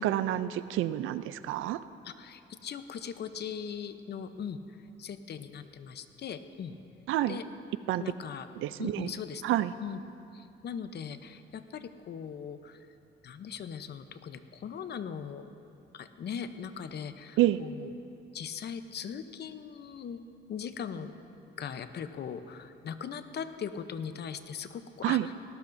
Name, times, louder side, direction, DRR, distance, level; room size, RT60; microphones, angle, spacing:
voice 1, 0.0-1.8 7.1-7.4 7.9-8.0 8.6-9.1 9.4-9.7 17.4-17.6 25.0-25.3, right 14 dB, 85° right, 14 dB, 0.5 m, -28 dB
voice 2, 2.0-6.8 7.3-7.4 8.0-8.5 8.8-9.4 9.8-10.0 10.3-12.9 13.2-15.5 15.9-17.9 18.3-20.2 20.5-21.1 21.6-25.3, left 7 dB, 55° left, 10 dB, 0.8 m, -40 dB
19.0 x 17.5 x 2.7 m, 2.7 s
cardioid pair, 90°, 20 cm